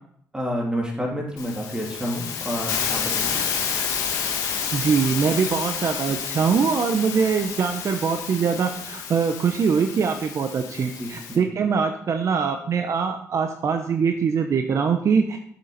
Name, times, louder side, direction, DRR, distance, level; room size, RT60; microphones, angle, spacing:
voice 1, 0.3-3.4 11.0-11.5, equal, 15° right, -1 dB, 2.8 m, -29 dB
Hiss, 1.4-11.4, left 7 dB, 90° left, 1.2 m, -30 dB
voice 2, 4.7-15.4, right 6 dB, 55° right, 6 dB, 0.7 m, -23 dB
7.5 x 6.8 x 4.0 m, 0.66 s
cardioid pair, 80°, 6 cm